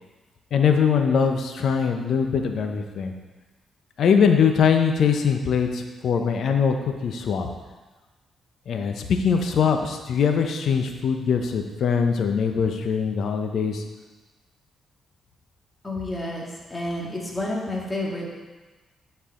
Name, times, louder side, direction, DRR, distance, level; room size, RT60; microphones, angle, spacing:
voice 1, 0.5-3.1 4.0-7.5 8.7-13.8, left 6 dB, 70° left, 5 dB, 0.8 m, -22 dB
voice 2, 15.8-18.2, left 1 dB, 20° left, -4 dB, 2.0 m, -30 dB
10.5 x 4.8 x 3.8 m, 1.2 s
supercardioid pair, 60°, 0 cm